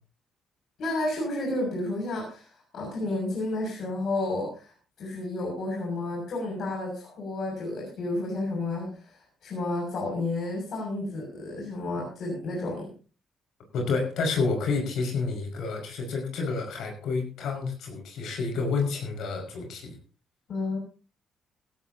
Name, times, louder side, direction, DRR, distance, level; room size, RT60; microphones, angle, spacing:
voice 1, 0.8-2.5 2.7-4.7 5.0-12.9 20.5-20.8, left 2 dB, 65° left, -1 dB, 6.5 m, -31 dB
voice 2, 13.7-20.0, left 4 dB, 80° left, 3 dB, 5.3 m, -29 dB
16.0 x 16.0 x 2.8 m, 0.36 s
cardioid pair, 90°, 0 cm